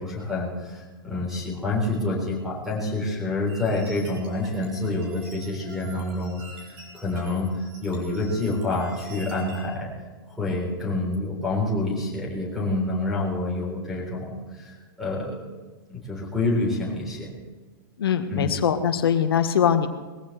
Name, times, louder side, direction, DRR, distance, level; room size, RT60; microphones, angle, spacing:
voice 1, 0.0-6.4 6.7-7.5 7.8-9.9 10.3-15.4 15.9-17.3 18.3-18.5, left 2 dB, 5° right, -2 dB, 3.7 m, -27 dB
sound 1, 3.5-9.6, right 2 dB, 30° right, 4.7 m, -45 dB
voice 2, 18.0-19.9, left 8 dB, 85° left, 7 dB, 1.4 m, -22 dB
20.5 x 15.0 x 3.3 m, 1.3 s
hypercardioid pair, 180°, 12 cm